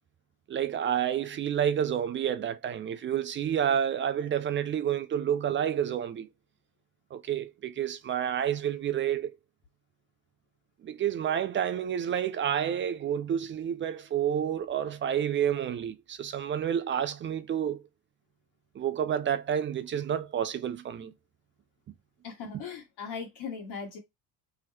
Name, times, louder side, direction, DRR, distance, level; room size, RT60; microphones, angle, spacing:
voice 1, 0.5-6.3 7.1-9.4 10.8-17.8 18.8-21.1 22.5-22.6, right 9 dB, 25° right, 0.4 m, -29 dB
voice 2, 22.2-24.0, left 6 dB, 55° left, 1.5 m, -39 dB
2.9 x 2.9 x 2.8 m
hypercardioid pair, 65°, 49 cm